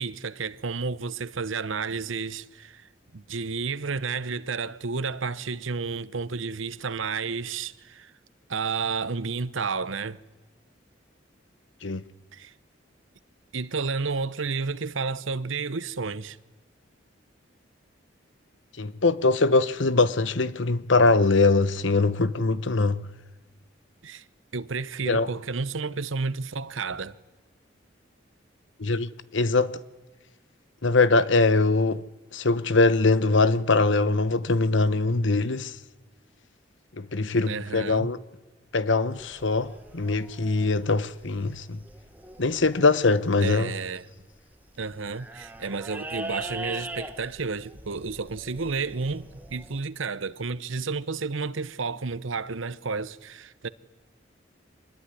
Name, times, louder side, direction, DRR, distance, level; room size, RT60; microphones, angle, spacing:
voice 1, 0.0-2.8 3.1-8.1 8.5-10.2 12.3-12.5 13.5-16.4 24.0-24.2 24.5-27.2 37.5-38.1 43.4-44.1 44.8-53.7, right 4 dB, 85° right, 0.9 m, -31 dB
voice 2, 18.8-23.0 25.1-25.3 28.8-29.8 30.8-32.0 32.3-35.8 37.0-38.2 38.7-41.8 42.4-43.7, left 3 dB, 75° left, 1.0 m, -22 dB
sound 1, 39.2-49.8, right 1 dB, 10° right, 1.5 m, -42 dB
25.5 x 20.5 x 9.9 m
head